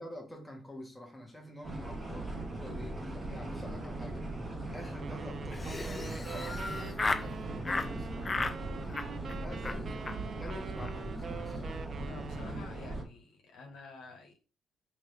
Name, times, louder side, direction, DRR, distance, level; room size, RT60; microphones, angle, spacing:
voice 1, 0.0-8.7 9.3-10.0 10.3-11.8, left 1 dB, 10° left, 1.3 m, -47 dB
sound 1, 1.6-13.0, right 2 dB, 25° right, 1.3 m, -39 dB
sound 2, 5.0-12.9, right 6 dB, 50° right, 0.3 m, -45 dB
Laughter, 5.5-7.3 7.6-7.9 8.2-8.6 8.9-9.3 9.6-9.8 10.1-10.2 10.4-10.5 10.8-10.9 11.2-11.5, left 3 dB, 25° left, 0.3 m, -35 dB
voice 2, 12.1-14.5, left 3 dB, 80° left, 1.2 m, -50 dB
3.5 x 3.1 x 3.4 m
cardioid pair, 90°, 0 cm